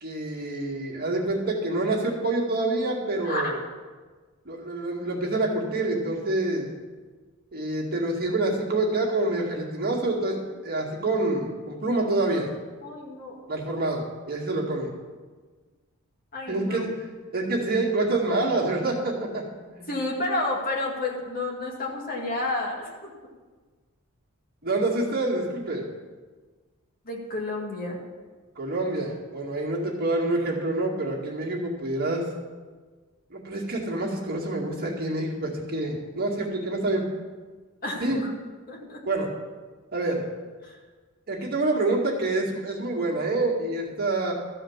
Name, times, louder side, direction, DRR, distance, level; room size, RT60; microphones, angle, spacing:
voice 1, 0.0-3.6 4.5-6.7 7.5-10.4 10.6-12.5 13.5-14.9 16.5-16.9 17.3-19.4 19.7-19.9 24.6-25.9 28.6-32.2 33.3-37.0 38.0-38.2 39.1-39.3 39.9-40.2 41.3-44.3, right 2 dB, 45° right, -3 dB, 2.1 m, -27 dB
voice 2, 3.2-3.6 12.8-13.4 16.3-16.9 19.9-23.1 27.0-28.0 37.8-38.3 38.7-39.0 40.6-40.8, left 2 dB, 45° left, -2 dB, 2.1 m, -30 dB
13.5 x 4.9 x 7.2 m, 1.4 s
head